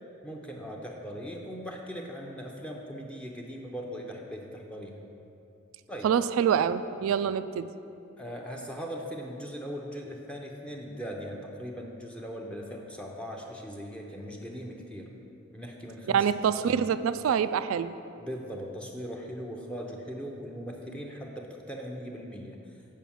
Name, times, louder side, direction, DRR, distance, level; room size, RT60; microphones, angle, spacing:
voice 1, 0.2-5.1 5.9-6.1 8.2-15.1 15.5-16.2 16.7-16.8 18.2-22.6, equal, 5° left, 0 dB, 0.6 m, -39 dB
voice 2, 6.0-7.7 16.1-17.9, right 8 dB, 80° right, 13 dB, 0.3 m, -26 dB
7.4 x 5.1 x 7.1 m, 2.7 s
head